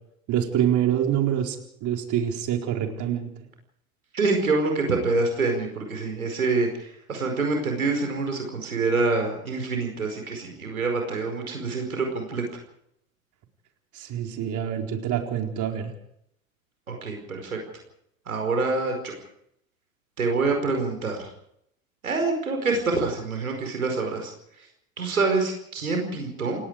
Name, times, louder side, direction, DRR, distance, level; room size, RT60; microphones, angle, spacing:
voice 1, 0.3-3.3 13.9-15.9, right 10 dB, 45° right, 3 dB, 4.4 m, -26 dB
voice 2, 4.1-12.4 16.9-17.6 18.3-19.1 20.2-21.3 22.0-24.3 25.0-26.7, right 3 dB, 90° right, 3 dB, 5.1 m, -26 dB
29.0 x 18.0 x 5.0 m, 0.73 s
hypercardioid pair, 85°, 41 cm